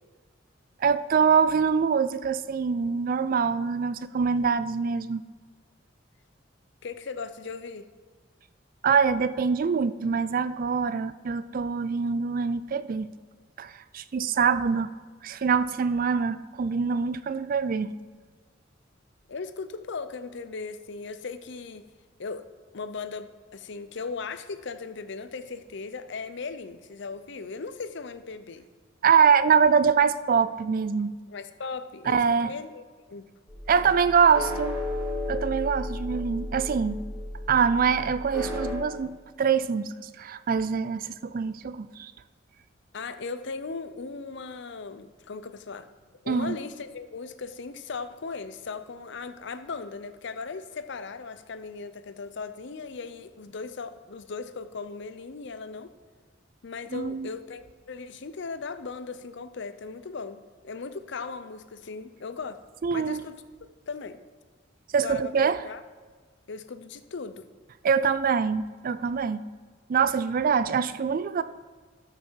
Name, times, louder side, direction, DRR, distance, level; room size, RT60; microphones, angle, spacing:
voice 1, 0.8-5.2 8.8-13.1 13.6-14.9 15.2-17.9 29.0-31.1 32.1-32.5 33.7-34.8 35.3-37.0 37.5-42.1 46.3-46.6 56.9-57.3 62.8-63.2 64.9-65.6 67.8-69.4 69.9-71.4, right 6 dB, 45° right, 14 dB, 0.4 m, -24 dB
voice 2, 6.8-7.9 19.3-21.9 22.2-22.4 22.7-28.6 31.3-33.3 42.9-45.9 46.2-55.9 56.6-62.6 62.9-63.3 63.9-64.2 65.0-65.8 66.5-67.5, left 4 dB, 65° left, 11 dB, 0.6 m, -38 dB
sound 1, 33.5-38.8, left 1 dB, 5° right, 2.6 m, -34 dB
13.0 x 6.0 x 4.6 m, 1.5 s
head